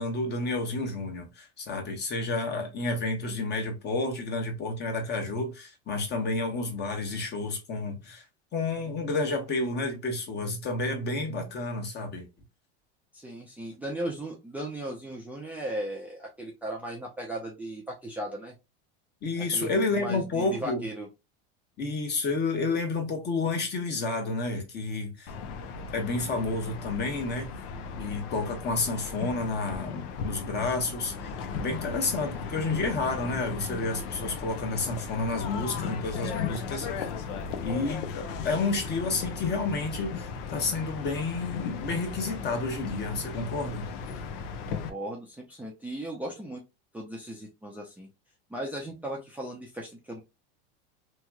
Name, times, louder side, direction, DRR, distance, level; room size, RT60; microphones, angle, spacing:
voice 1, 0.0-8.2 8.5-12.3 19.2-20.8 21.8-25.3 25.8-27.5 28.0-36.9 37.6-43.9, left 3 dB, 35° left, 1.1 m, -30 dB
voice 2, 13.1-18.5 19.4-19.7 20.0-21.1 44.7-46.6 46.9-48.1 48.5-50.2, right 1 dB, 5° right, 0.6 m, -37 dB
sound 1, 25.3-44.9, left 5 dB, 65° left, 0.7 m, -36 dB
3.0 x 2.9 x 2.3 m
supercardioid pair, 125°, 31 cm